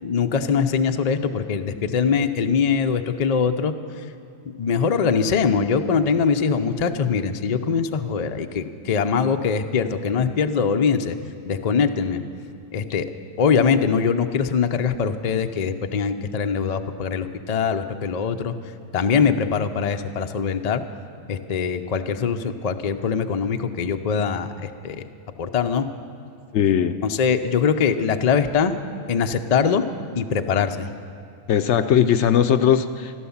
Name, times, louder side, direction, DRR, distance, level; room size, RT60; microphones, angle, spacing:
voice 1, 0.0-4.0 4.6-11.2 11.5-12.2 12.7-13.1 13.4-18.5 18.9-20.8 21.3-25.0 25.4-25.9 27.0-28.7 29.1-29.8 30.1-30.9, left 6 dB, 45° left, 7 dB, 0.6 m, -22 dB
voice 2, 26.5-27.0 31.5-33.1, left 9 dB, 65° left, 10 dB, 0.8 m, -19 dB
15.5 x 12.5 x 7.1 m, 2.5 s
omnidirectional pair, 1.4 m